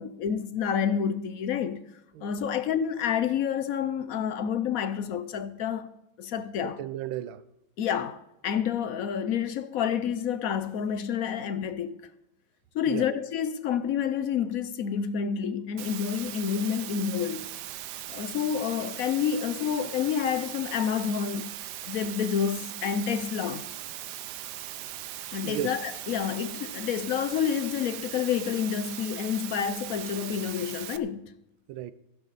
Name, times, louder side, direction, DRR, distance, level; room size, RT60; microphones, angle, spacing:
voice 1, 0.0-1.8 2.2-5.9 6.2-6.8 7.8-12.0 12.7-17.5 18.1-21.5 21.8-23.6 25.3-31.3, left 8 dB, 65° left, 0.9 m, -29 dB
voice 2, 6.6-7.4 12.9-13.2 25.4-25.7 31.7-31.9, right 12 dB, 85° right, 1.5 m, -35 dB
Water, 15.8-31.0, right 13 dB, 70° right, 1.1 m, -39 dB
15.5 x 11.5 x 4.1 m
omnidirectional pair, 2.2 m